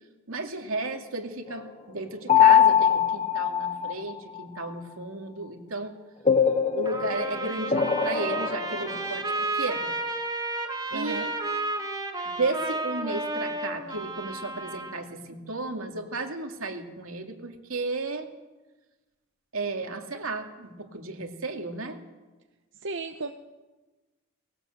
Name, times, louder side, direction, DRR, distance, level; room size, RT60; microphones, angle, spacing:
voice 1, 0.3-5.9 6.7-9.2 9.5-9.9 10.9-11.3 12.3-18.3 19.5-22.0, right 3 dB, 80° right, 4 dB, 2.3 m, -33 dB
sound 1, 2.3-4.1 6.3-9.0, left 8 dB, 30° left, 1.4 m, -22 dB
Trumpet, 6.8-15.0, right 2 dB, 20° right, 2.3 m, -32 dB
voice 2, 10.9-11.3 22.8-23.3, right 3 dB, 60° right, 7 dB, 0.9 m, -34 dB
19.5 x 18.0 x 7.9 m, 1.2 s
head